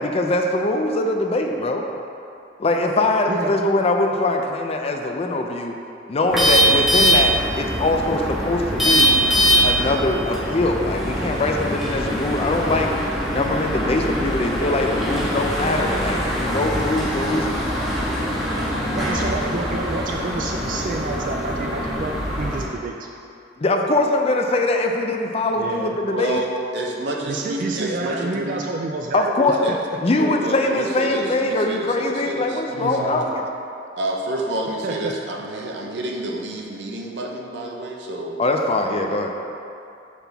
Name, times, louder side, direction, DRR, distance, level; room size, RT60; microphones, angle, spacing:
voice 1, 0.0-1.8 2.6-5.7 6.1-9.2 9.6-12.9 13.3-17.7 23.6-26.4 29.1-33.4 38.4-39.3, left 2 dB, 35° left, 3 dB, 0.4 m, -22 dB
voice 2, 3.3-3.7 18.9-23.1 25.5-26.0 27.2-29.3 29.7-29.8 32.8-33.5 34.8-35.1, right 3 dB, 45° right, 1 dB, 0.3 m, -29 dB
sound 1, 6.3-22.6, equal, ahead, 1.5 m, -22 dB
voice 3, 26.1-28.6 29.4-29.7 30.2-33.2 34.0-38.4, right 1 dB, 65° right, 0 dB, 0.8 m, -29 dB
5.8 x 5.7 x 3.5 m, 2.6 s
head